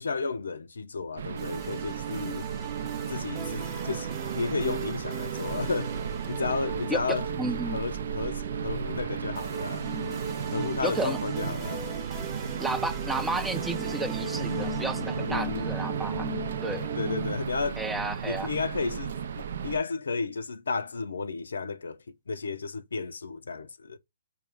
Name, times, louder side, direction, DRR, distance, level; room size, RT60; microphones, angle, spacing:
voice 1, 0.0-2.5 3.1-4.1 4.3-6.0 6.3-7.3 7.6-9.9 10.5-11.9 15.2-15.7 17.0-17.8 18.2-22.0 22.3-24.0, left 4 dB, 80° left, 0.5 m, -33 dB
sound 1, 1.2-19.8, right 7 dB, 60° right, 0.4 m, -35 dB
sound 2, 1.4-17.4, right 4 dB, 20° right, 0.9 m, -37 dB
voice 2, 6.9-7.8 10.8-11.2 12.6-16.3 16.6-16.9 17.8-18.5, right 2 dB, 5° right, 0.5 m, -32 dB
5.0 x 2.4 x 3.4 m
hypercardioid pair, 140°, 0 cm